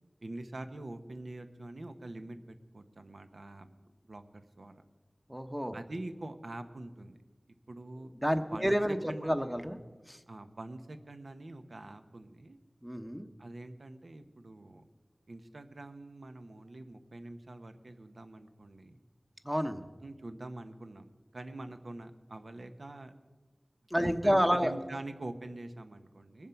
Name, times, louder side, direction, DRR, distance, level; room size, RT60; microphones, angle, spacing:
voice 1, 0.2-3.7 4.1-4.8 5.7-7.2 7.7-8.1 8.5-8.7 9.1-9.4 10.3-12.6 13.4-14.8 15.3-19.0 20.0-21.0 21.3-23.1 24.0-26.5, right 2 dB, 75° right, 9 dB, 0.9 m, -45 dB
voice 2, 5.3-5.8 8.2-9.8 10.1-10.2 12.8-13.3 19.4-19.8 23.9-24.7, equal, 10° right, 7 dB, 0.9 m, -29 dB
21.0 x 7.3 x 5.8 m, 1.3 s
wide cardioid pair, 60°, 0 cm